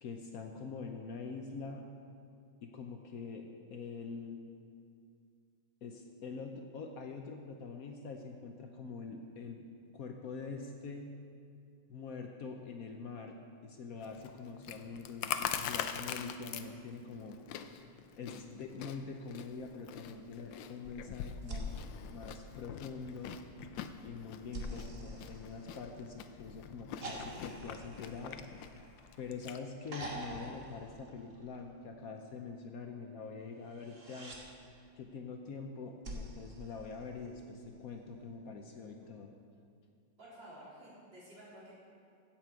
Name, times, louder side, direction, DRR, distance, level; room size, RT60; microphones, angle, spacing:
voice 1, 0.0-1.8 2.6-3.4 3.7-4.4 5.8-9.7 9.9-11.1 11.9-13.4 13.6-17.6 18.2-21.8 22.1-23.4 24.0-28.4 29.2-34.4 35.0-39.3, left 4 dB, 60° left, 3 dB, 1.0 m, -44 dB
Chewing mastication, 14.0-29.6, left 9 dB, 85° left, 1.3 m, -44 dB
sound 1, 21.4-23.0 24.5-26.2 27.0-29.3 29.9-31.7 33.7-34.4 36.0-37.5 39.0-39.1, right 1 dB, 35° right, 1.4 m, -46 dB
voice 2, 40.2-41.7, right 1 dB, 80° right, -9 dB, 4.4 m, -52 dB
16.0 x 7.6 x 4.6 m, 2.4 s
omnidirectional pair, 2.0 m